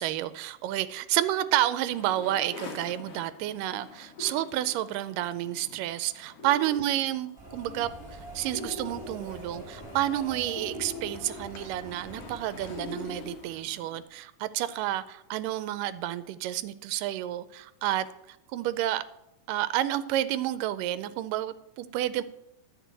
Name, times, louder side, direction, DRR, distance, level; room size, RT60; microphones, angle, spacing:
voice 1, 0.0-7.9 8.4-18.1 18.5-19.0 19.5-22.2, right 13 dB, 85° right, 2.2 m, -30 dB
sound 1, 1.8-14.0, left 2 dB, 50° left, 2.4 m, -44 dB
Subway metro underground, 7.4-13.6, right 1 dB, 15° right, 3.7 m, -45 dB
13.0 x 4.5 x 8.1 m
omnidirectional pair, 3.8 m